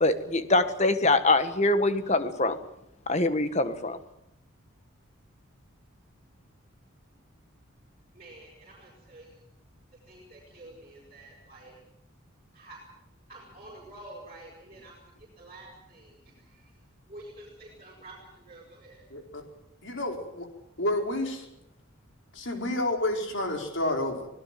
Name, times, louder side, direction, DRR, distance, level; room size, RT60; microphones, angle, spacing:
voice 1, 0.0-2.6 3.1-4.0, left 2 dB, 30° left, 10 dB, 1.5 m, -24 dB
voice 2, 8.1-9.3 10.1-11.8 12.5-12.8 13.3-16.7 17.1-19.1 19.7-19.8, right 1 dB, 30° right, -2 dB, 6.6 m, -49 dB
voice 3, 19.1-19.4 19.8-20.5 20.8-21.4 22.3-24.3, left 1 dB, 60° left, 3 dB, 4.5 m, -30 dB
25.0 x 18.0 x 7.6 m, 0.82 s
head